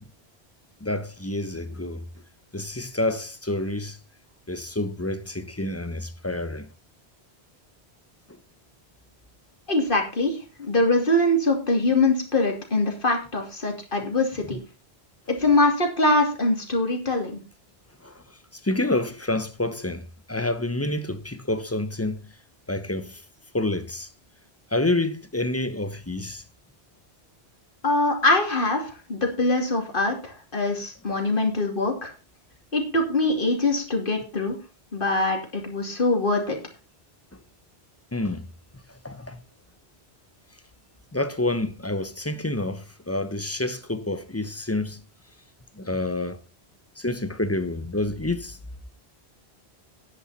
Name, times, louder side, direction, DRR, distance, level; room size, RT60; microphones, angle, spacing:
voice 1, 0.8-2.0 2.5-4.0 4.5-6.7 14.5-14.6 18.0-22.3 22.7-23.2 23.5-24.1 24.7-26.4 37.3-37.4 38.1-38.5 38.9-39.4 41.1-45.0 45.8-46.4 47.0-48.6, left 2 dB, 15° left, 0.8 m, -28 dB
voice 2, 9.7-14.6 15.3-17.4 27.8-32.1 32.7-34.6 34.9-36.6, left 2 dB, 55° left, 3.0 m, -23 dB
11.0 x 10.5 x 4.2 m
omnidirectional pair, 1.1 m